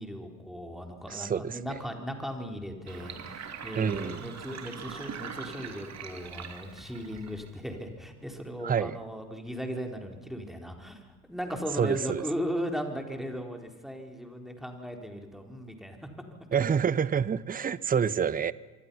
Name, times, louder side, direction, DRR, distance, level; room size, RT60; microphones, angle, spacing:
voice 1, 0.0-16.0, equal, ahead, 3 dB, 4.4 m, -37 dB
voice 2, 1.1-1.8 3.7-4.3 8.6-9.0 11.8-12.2 16.5-18.5, right 7 dB, 20° right, 20 dB, 0.8 m, -28 dB
Sink (filling or washing), 2.9-7.8, right 6 dB, 35° right, 2.8 m, -42 dB
26.5 x 24.5 x 5.8 m, 1.3 s
figure-of-eight pair, 60°, 43 cm